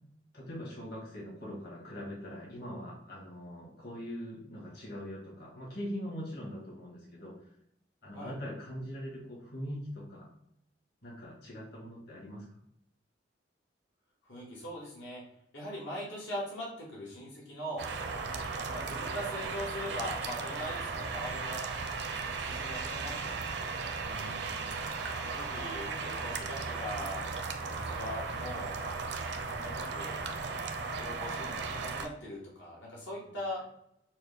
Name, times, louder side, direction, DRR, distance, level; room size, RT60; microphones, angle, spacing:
voice 1, 0.3-7.4 8.0-10.3 11.0-12.4 24.0-24.9, equal, 60° left, -4 dB, 1.5 m, -42 dB
voice 2, 14.3-15.2 15.5-17.9 18.6-21.7 22.5-23.9 25.1-27.3 27.6-28.8 29.5-30.2 30.9-33.6, equal, 85° left, -5 dB, 1.4 m, -41 dB
sound 1, 17.8-32.1, right 4 dB, 65° right, 0.5 m, -36 dB
6.1 x 2.2 x 3.4 m, 0.74 s
head